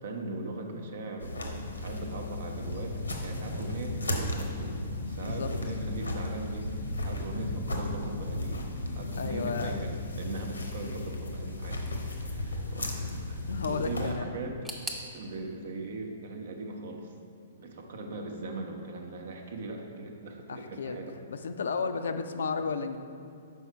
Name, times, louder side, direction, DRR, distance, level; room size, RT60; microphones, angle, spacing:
voice 1, 0.0-4.8 5.1-8.7 8.9-14.7 15.1-17.1 17.6-21.1, right 2 dB, 55° right, 3 dB, 0.8 m, -39 dB
sound 1, 1.2-14.1, left 2 dB, 80° left, 0.8 m, -35 dB
voice 2, 9.2-9.8 13.5-14.3 20.5-21.0 21.3-23.0, left 5 dB, 65° left, 9 dB, 0.4 m, -33 dB
sound 2, 14.6-17.5 17.8-18.6 18.9-19.0 19.8-19.9, right 1 dB, 5° right, 0.7 m, -45 dB
6.2 x 4.8 x 4.5 m, 2.5 s
figure-of-eight pair, 115°, 0 cm